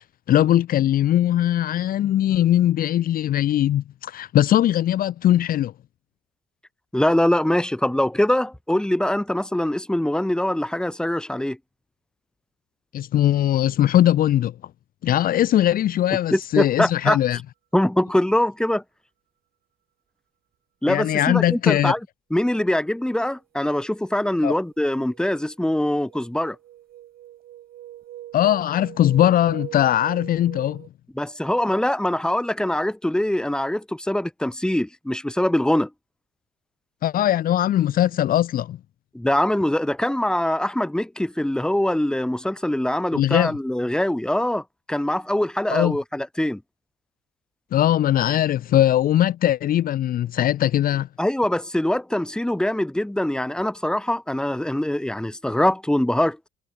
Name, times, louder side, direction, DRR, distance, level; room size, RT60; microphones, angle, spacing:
voice 1, 0.0-5.7 12.9-14.5 15.0-17.4 20.9-21.9 24.4-24.5 28.3-30.9 37.0-38.8 43.1-43.6 45.7-46.0 47.7-51.1, left 12 dB, 60° left, 1.1 m, -20 dB
voice 2, 6.9-11.6 16.3-17.2 17.7-18.8 20.8-22.0 22.3-26.6 31.2-35.9 39.1-46.6 51.2-56.4, left 1 dB, 5° left, 4.7 m, -23 dB
sound 1, 23.8-24.2 24.6-30.9, right 13 dB, 70° right, 6.3 m, -42 dB
cardioid pair, 110°, 17 cm